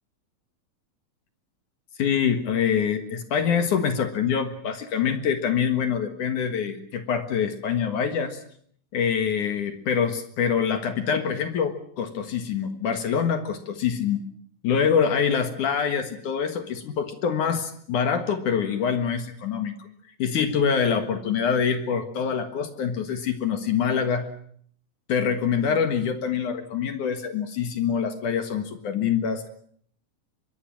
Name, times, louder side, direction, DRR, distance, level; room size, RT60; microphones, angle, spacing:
voice 1, 2.0-8.4 8.9-14.2 14.6-19.7 20.2-24.3 25.1-29.5, left 7 dB, 60° left, 8 dB, 2.9 m, -25 dB
24.5 x 22.5 x 7.5 m, 0.62 s
omnidirectional pair, 4.2 m